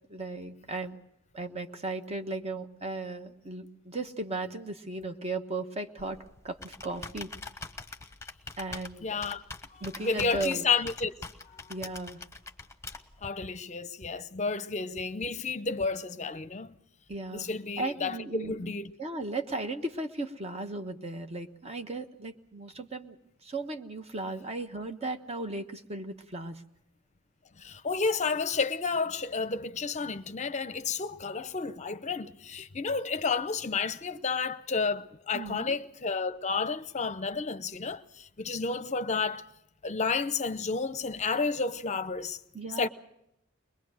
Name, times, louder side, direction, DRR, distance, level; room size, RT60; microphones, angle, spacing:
voice 1, 0.1-1.0 1.3-6.2 6.4-7.3 8.6-9.1 9.8-10.6 11.7-12.2 17.1-17.5 17.8-18.7 19.0-26.6 35.3-35.8 42.5-42.9, right 2 dB, 30° right, 1.2 m, -36 dB
Computer keyboard, 6.0-13.3, left 3 dB, 15° left, 1.1 m, -44 dB
voice 2, 9.0-9.4 9.7-11.1 11.4-11.7 13.2-16.8 17.3-18.9 27.6-39.5 39.8-42.4 42.8-42.9, left 4 dB, 35° left, 0.7 m, -31 dB
22.0 x 22.0 x 6.4 m
head